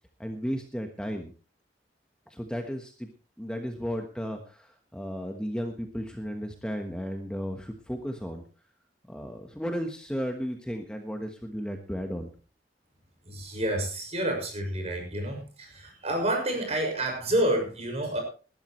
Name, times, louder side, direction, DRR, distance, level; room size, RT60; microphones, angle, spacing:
voice 1, 0.2-1.3 2.3-3.1 3.4-8.4 9.1-12.3, equal, 5° left, 3 dB, 1.2 m, -34 dB
voice 2, 13.2-18.2, right 1 dB, 35° right, 2 dB, 6.3 m, -29 dB
20.0 x 12.5 x 3.2 m, 0.35 s
head